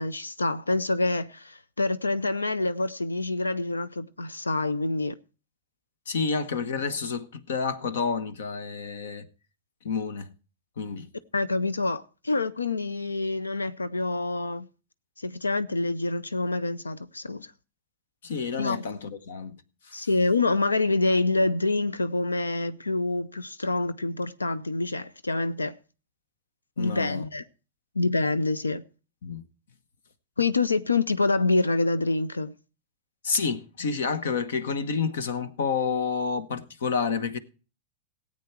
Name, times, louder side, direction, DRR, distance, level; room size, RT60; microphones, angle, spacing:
voice 1, 0.0-5.1 11.3-14.7 15.2-17.5 18.6-18.8 19.9-25.8 26.8-27.4 28.0-28.8 30.4-32.5, left 3 dB, 90° left, 0.5 m, -26 dB
voice 2, 6.1-9.3 9.8-10.3 10.8-11.1 18.2-19.6 19.9-20.1 26.8-27.2 29.2-29.5 33.2-37.4, left 5 dB, 70° left, 1.2 m, -29 dB
17.0 x 8.7 x 4.6 m
hypercardioid pair, 95°, 0 cm